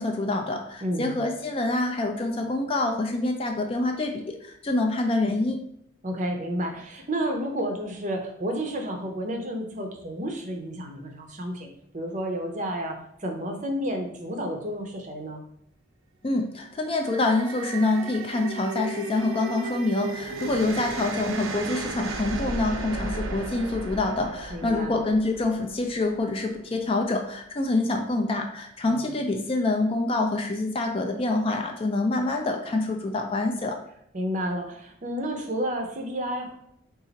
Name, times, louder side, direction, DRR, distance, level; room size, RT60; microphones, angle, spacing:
voice 1, 0.0-5.6 16.2-33.8, left 2 dB, 25° left, 3 dB, 0.4 m, -26 dB
voice 2, 0.8-1.2 6.0-11.7 11.9-15.4 24.5-24.9 28.8-29.0 34.1-36.5, equal, 35° right, 3 dB, 0.6 m, -31 dB
sound 1, 16.8-26.1, right 3 dB, 80° right, 0.5 m, -35 dB
4.0 x 2.4 x 3.9 m, 0.73 s
head